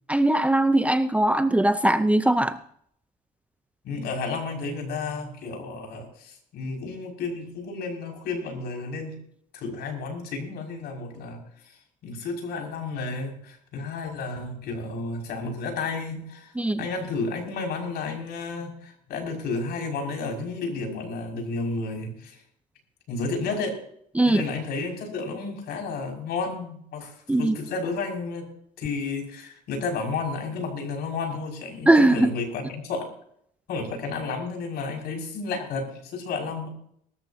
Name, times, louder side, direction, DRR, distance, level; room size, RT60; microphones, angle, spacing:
voice 1, 0.1-2.6 16.6-16.8 24.2-24.4 27.3-27.5 31.9-32.3, right 1 dB, 10° right, 12 dB, 0.7 m, -20 dB
voice 2, 3.8-9.2 9.5-16.5 16.8-22.4 23.1-23.8 24.2-28.5 28.8-33.1 33.7-36.7, left 4 dB, 65° left, 2 dB, 6.0 m, -32 dB
22.0 x 13.5 x 2.8 m, 0.66 s
cardioid pair, 95°, 18 cm